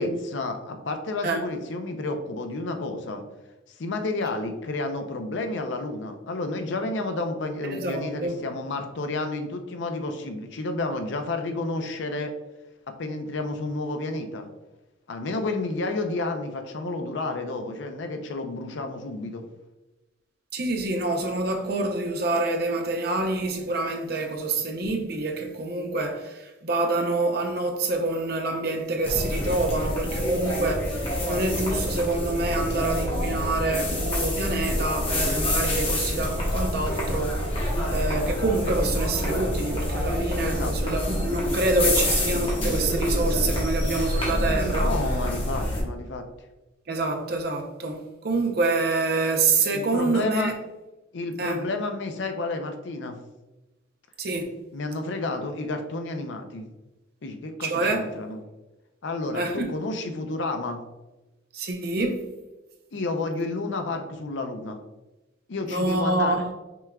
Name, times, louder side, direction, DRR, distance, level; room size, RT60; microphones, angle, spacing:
voice 1, 0.0-3.2 3.7-12.3 12.9-14.5 15.1-19.4 40.4-40.7 44.8-46.2 49.7-50.5 51.1-53.2 54.7-56.7 57.2-58.4 59.0-60.8 62.9-64.8 65.5-66.4, left 2 dB, 65° left, 0.5 m, -31 dB
voice 2, 7.6-8.4 20.5-37.6 37.9-45.0 46.9-50.5 51.4-51.6 54.2-54.5 57.6-58.1 59.3-59.7 61.5-62.2 65.7-66.5, right 2 dB, 50° right, 0.6 m, -27 dB
sound 1, 29.0-45.8, left 1 dB, 30° left, 1.1 m, -27 dB
5.9 x 3.5 x 2.3 m
head